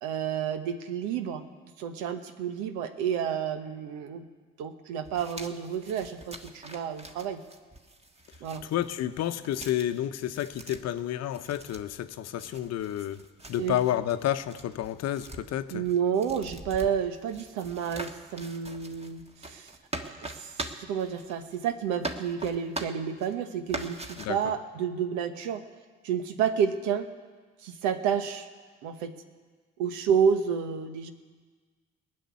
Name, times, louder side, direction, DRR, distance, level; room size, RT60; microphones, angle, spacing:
voice 1, 0.0-1.4 1.8-4.2 4.6-7.4 8.4-8.6 13.6-13.8 15.7-19.7 20.0-20.5 20.9-25.6 26.0-27.1 27.6-28.5 28.8-29.2 29.8-31.1, right 7 dB, 75° right, 9 dB, 1.1 m, -30 dB
sound 1, 5.0-21.7 22.0-23.3 23.7-24.2, right 2 dB, 20° right, 1.6 m, -42 dB
voice 2, 8.6-13.2 13.5-15.8 24.2-24.4, left 12 dB, 60° left, 11 dB, 0.8 m, -30 dB
19.5 x 6.7 x 9.6 m, 1.5 s
hypercardioid pair, 55°, 29 cm